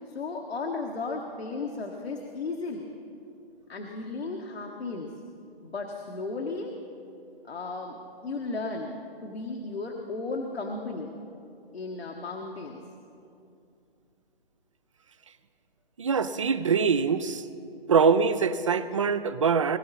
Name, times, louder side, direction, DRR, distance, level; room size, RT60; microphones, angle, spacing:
voice 1, 0.0-2.9 3.7-5.1 5.6-6.8 7.4-8.9 9.2-11.1 11.7-12.8, left 3 dB, 80° left, 1 dB, 1.5 m, -35 dB
voice 2, 16.0-17.4 17.9-19.8, right 5 dB, 30° right, 13 dB, 0.5 m, -23 dB
21.0 x 13.0 x 4.2 m, 2.6 s
hypercardioid pair, 155°, 31 cm